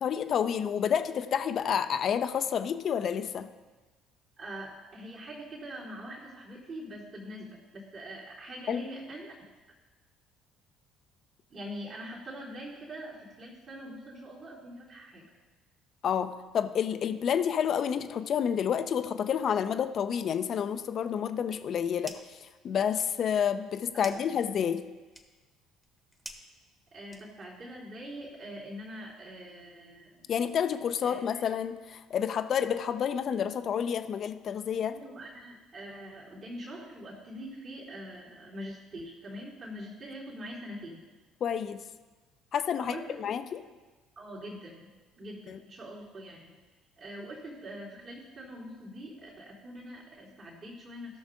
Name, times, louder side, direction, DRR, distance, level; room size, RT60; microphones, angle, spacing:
voice 1, 0.0-3.5 8.7-8.8 16.0-24.8 30.3-35.0 41.4-41.8 42.5-43.6 45.5-45.6, left 8 dB, 50° left, 9 dB, 0.7 m, -29 dB
voice 2, 4.4-9.4 11.5-15.3 23.9-24.2 26.9-30.3 31.0-31.4 34.9-41.0 42.8-43.3 44.1-46.6 47.0-51.2, equal, 45° right, -6 dB, 3.1 m, -43 dB
sound 1, 21.9-22.4 22.7-27.6, right 1 dB, 10° right, 1.6 m, -50 dB
17.0 x 6.2 x 3.8 m, 1.3 s
hypercardioid pair, 55°, 0 cm